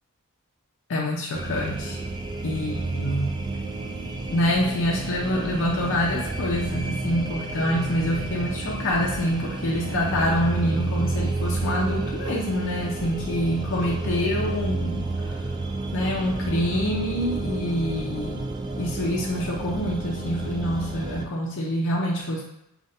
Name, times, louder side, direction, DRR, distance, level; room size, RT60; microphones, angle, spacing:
voice 1, 0.9-2.0 2.4-3.3 4.3-15.1 15.9-18.4 18.8-22.4, equal, 60° left, -3 dB, 0.6 m, -26 dB
sound 1, 1.3-21.2, right 2 dB, 20° right, 0.3 m, -30 dB
6.4 x 2.4 x 2.7 m, 0.85 s
head